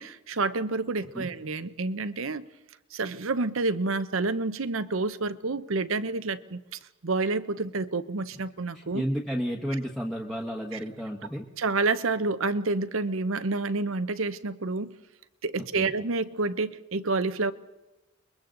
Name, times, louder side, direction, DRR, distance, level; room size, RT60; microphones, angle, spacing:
voice 1, 0.0-2.5 2.9-6.6 7.0-9.0 11.6-14.9 15.4-17.5, right 3 dB, 75° right, 13 dB, 0.8 m, -28 dB
voice 2, 8.7-11.5 15.7-15.9, equal, ahead, -1 dB, 1.2 m, -32 dB
30.0 x 22.0 x 3.9 m, 1.0 s
head